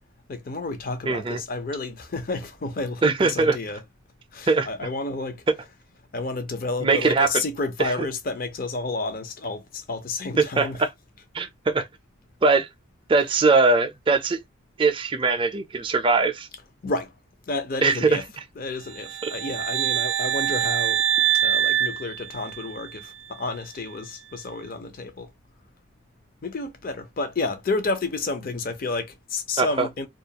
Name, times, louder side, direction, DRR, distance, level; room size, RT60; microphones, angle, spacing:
voice 1, 0.3-3.8 4.3-5.4 6.1-10.9 13.2-13.3 16.8-17.1 17.5-18.3 18.5-21.0 21.4-25.3 26.4-30.1, left 3 dB, 45° left, 0.5 m, -30 dB
voice 2, 1.1-1.4 3.0-3.6 4.5-4.7 6.8-7.4 7.8-7.9 10.4-10.9 11.3-11.9 12.4-12.7 13.1-14.4 14.8-16.5 17.8-18.2 19.2-19.3 29.6-29.9, right 3 dB, 25° right, 0.4 m, -21 dB
sound 1, 18.9-22.9, right 10 dB, 90° right, 0.5 m, -24 dB
2.3 x 2.3 x 2.8 m
head